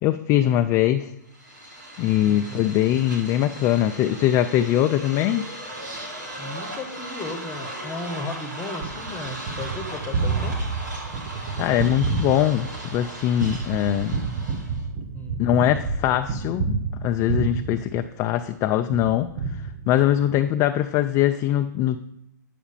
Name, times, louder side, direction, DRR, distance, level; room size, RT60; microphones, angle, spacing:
voice 1, 0.0-1.1 2.0-5.4 11.6-14.2 15.4-19.3 19.9-22.0, left 12 dB, 30° left, 8 dB, 0.4 m, -22 dB
sound 1, 1.3-14.8, right 1 dB, 80° right, 3.0 m, -38 dB
voice 2, 2.2-2.7 6.4-10.8 15.1-15.4, left 2 dB, 15° left, 6 dB, 1.3 m, -35 dB
Gunshot gunfire, 8.8-18.5 18.9-20.3, right 4 dB, 50° right, 0.9 m, -29 dB
8.0 x 5.0 x 7.2 m, 0.81 s
hypercardioid pair, 125°, 10 cm